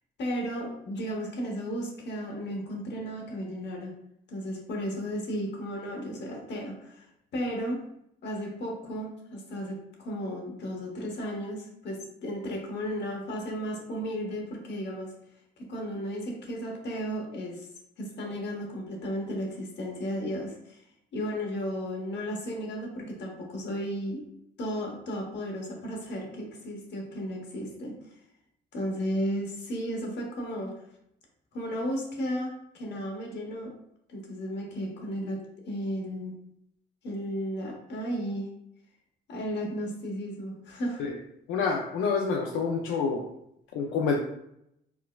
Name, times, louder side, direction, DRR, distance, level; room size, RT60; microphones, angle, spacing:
voice 1, 0.2-3.9 4.3-7.8 8.2-15.1 15.6-17.7 18.0-20.8 21.1-24.2 24.6-28.1 28.7-30.7 31.5-33.7 34.1-36.4 37.0-38.5 39.3-41.0, equal, 60° left, 0 dB, 0.9 m, -34 dB
voice 2, 41.5-43.2 43.7-44.2, left 5 dB, 90° left, 0 dB, 0.4 m, -27 dB
4.4 x 2.1 x 2.2 m, 0.77 s
cardioid pair, 90°, 20 cm